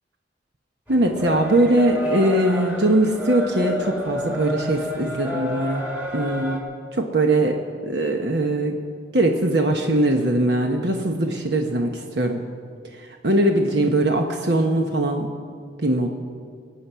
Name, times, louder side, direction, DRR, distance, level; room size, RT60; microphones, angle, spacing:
sound 1, 0.9-6.6, left 1 dB, 10° right, 1.9 m, -30 dB
voice 1, 0.9-5.8 6.1-6.6 6.9-7.6 7.9-8.8 9.1-12.4 13.2-15.3 15.8-16.1, right 1 dB, 65° right, 3 dB, 1.0 m, -21 dB
24.0 x 8.5 x 5.7 m, 2.1 s
head